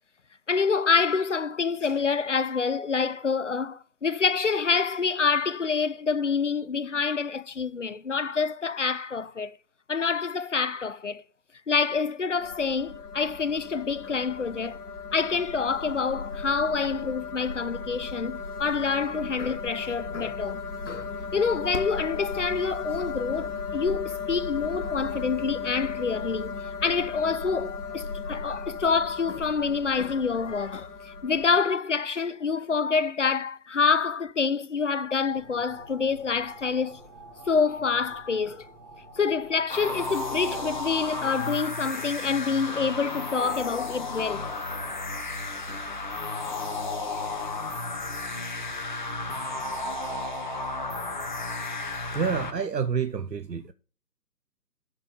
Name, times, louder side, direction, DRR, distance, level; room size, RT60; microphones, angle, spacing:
voice 1, 0.5-9.6 9.9-11.2 11.7-14.8 15.1-26.6 26.8-37.0 37.5-38.7 39.2-44.5 44.9-45.0 45.7-45.8 46.5-46.6, left 5 dB, 50° left, 0.5 m, -27 dB
sound 1, 12.4-31.6, left 5 dB, 65° left, 1.8 m, -36 dB
sound 2, 35.3-41.7, right 1 dB, 15° right, 1.2 m, -49 dB
sound 3, 39.7-52.5, left 2 dB, 30° left, 1.1 m, -33 dB
voice 2, 52.1-53.7, right 6 dB, 85° right, 0.8 m, -28 dB
11.5 x 4.6 x 5.0 m
figure-of-eight pair, 150°, 49 cm